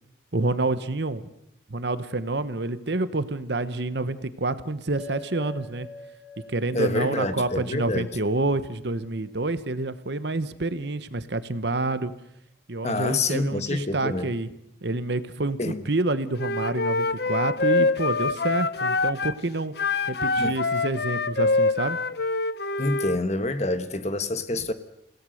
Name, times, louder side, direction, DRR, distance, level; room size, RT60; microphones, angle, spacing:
voice 1, 0.3-1.3 1.7-5.9 6.5-12.1 12.7-14.5 14.8-19.7 20.1-22.0, right 2 dB, 65° right, 1.1 m, -28 dB
sound 1, 5.0-9.7, left 2 dB, 5° right, 4.5 m, -46 dB
voice 2, 6.7-8.1 12.8-14.3 15.6-15.8 20.4-20.6 22.8-24.7, left 2 dB, 35° left, 1.3 m, -27 dB
Wind instrument woodwind instrument, 16.4-19.4 19.8-23.2, left 3 dB, 55° left, 0.8 m, -25 dB
28.5 x 17.5 x 6.5 m
head